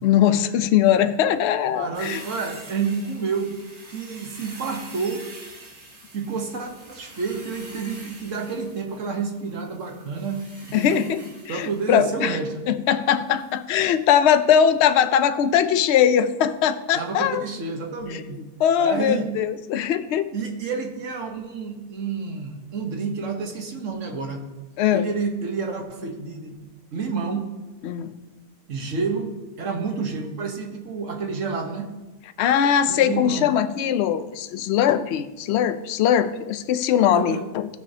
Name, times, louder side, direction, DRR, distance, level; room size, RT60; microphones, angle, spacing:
voice 1, 0.0-2.2 10.7-11.2 11.5-12.4 12.7-17.4 18.1-18.2 18.6-20.3 24.8-25.1 27.8-28.1 32.4-37.7, left 9 dB, 65° left, 11 dB, 0.6 m, -21 dB
voice 2, 1.7-3.6 3.9-5.2 6.1-10.4 10.7-11.0 11.5-12.7 16.9-18.4 18.8-19.3 20.3-24.4 24.9-26.6 26.9-27.5 28.7-29.3 29.6-31.9 32.9-33.6 37.1-37.4, right 4 dB, 55° right, 4 dB, 1.4 m, -29 dB
sound 1, 1.9-12.1 13.4-13.6 13.9-14.0, right 2 dB, 35° right, 1.5 m, -45 dB
16.0 x 6.3 x 2.8 m, 1.1 s
omnidirectional pair, 1.6 m